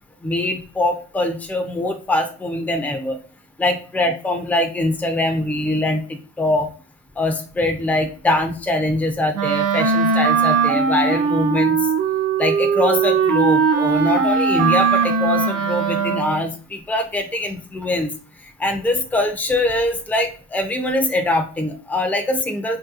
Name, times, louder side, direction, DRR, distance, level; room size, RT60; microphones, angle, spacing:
voice 1, 0.2-3.2 3.6-6.7 7.2-11.8 12.4-18.1 18.6-22.8, left 1 dB, 5° left, 5 dB, 0.5 m, -22 dB
Wind instrument woodwind instrument, 9.3-16.5, right 5 dB, 55° right, 0.6 m, -19 dB
3.2 x 2.7 x 2.4 m, 0.37 s
cardioid pair, 90°, 30 cm